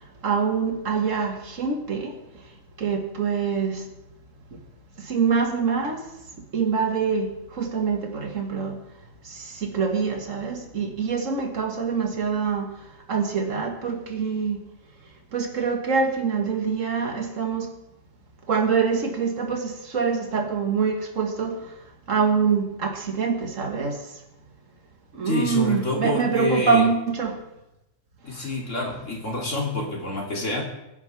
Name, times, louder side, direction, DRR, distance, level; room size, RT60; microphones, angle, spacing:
voice 1, 0.2-2.1 2.8-3.8 5.1-6.0 6.5-8.8 9.3-12.7 13.1-14.6 15.3-17.7 18.5-21.7 22.1-24.0 25.1-27.4, right 5 dB, 70° right, 4 dB, 2.0 m, -25 dB
voice 2, 25.2-26.8 28.2-30.6, left 2 dB, 65° left, -1 dB, 3.2 m, -27 dB
23.0 x 9.6 x 3.4 m, 0.91 s
omnidirectional pair, 1.4 m